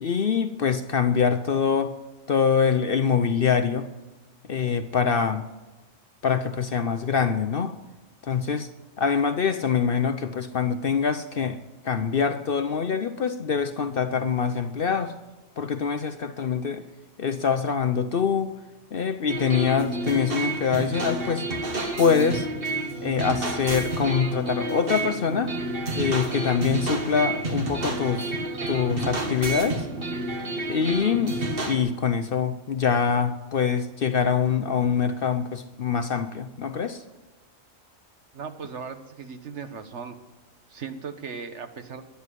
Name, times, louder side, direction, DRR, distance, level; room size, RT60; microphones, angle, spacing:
voice 1, 0.0-2.0 2.3-3.9 4.5-5.4 6.2-7.8 8.2-8.7 9.0-15.1 15.6-16.9 17.2-18.5 18.9-21.5 22.0-22.5 23.0-25.5 25.9-28.3 28.7-29.9 30.7-31.3 31.6-37.0, left 6 dB, 50° left, 0.8 m, -24 dB
sound 1, 19.3-31.8, right 2 dB, 45° right, 1.8 m, -30 dB
voice 2, 38.3-40.2 40.7-42.0, right 6 dB, 60° right, 1.4 m, -37 dB
12.5 x 11.0 x 9.9 m
omnidirectional pair, 1.4 m